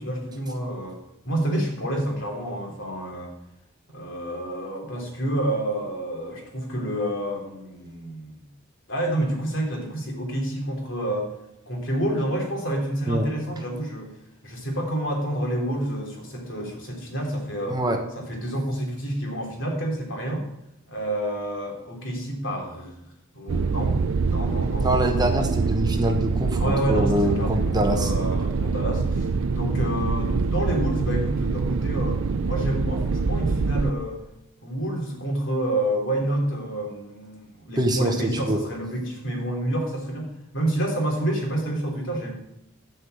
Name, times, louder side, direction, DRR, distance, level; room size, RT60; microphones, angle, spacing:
voice 1, 0.0-3.3 3.9-8.4 8.9-11.3 11.7-14.1 14.4-17.8 18.1-20.5 20.9-23.1 23.3-25.1 26.6-34.2 34.6-42.3, right 1 dB, 70° left, 0 dB, 3.2 m, -28 dB
voice 2, 17.7-18.0 24.8-28.1 37.8-38.6, right 1 dB, 20° right, 4 dB, 1.2 m, -24 dB
sound 1, 23.5-33.9, right 4 dB, 85° right, 0.5 m, -25 dB
12.0 x 5.5 x 8.0 m, 0.84 s
head